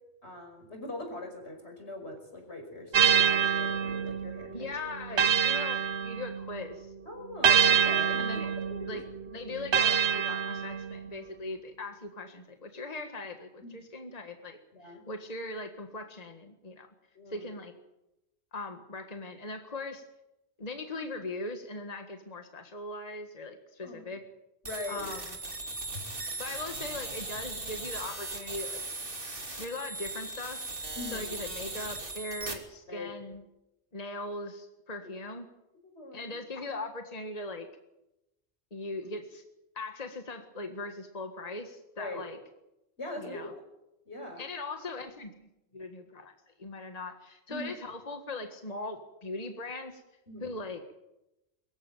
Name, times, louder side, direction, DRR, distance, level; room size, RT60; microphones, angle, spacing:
voice 1, 0.2-4.7 7.1-8.2 8.7-9.0 9.3-9.4 13.6-13.8 14.7-15.1 17.1-17.5 23.8-24.0 24.6-25.1 31.0-31.3 32.9-33.1 35.8-36.3 42.0-42.2 43.0-43.6 44.1-44.4 47.5-47.7 50.3-50.6, left 2 dB, 80° left, 4 dB, 5.7 m, -41 dB
sound 1, 2.9-6.7 7.4-11.1, right 7 dB, 85° right, 1.3 m, -26 dB
voice 2, 4.5-6.9 8.2-8.5 8.8-9.0 9.3-16.9 17.3-17.7 18.5-20.0 20.6-24.2 24.9-25.3 26.4-28.8 29.6-30.7 31.1-33.4 33.9-35.5 36.1-37.7 38.7-39.4 39.8-42.4 43.2-43.5 44.4-45.3 45.7-50.0 50.4-50.8, left 2 dB, 35° left, 6 dB, 1.8 m, -40 dB
sound 2, 24.7-32.5, right 2 dB, 55° right, 3.3 m, -38 dB
23.5 x 14.5 x 9.2 m, 0.91 s
omnidirectional pair, 1.1 m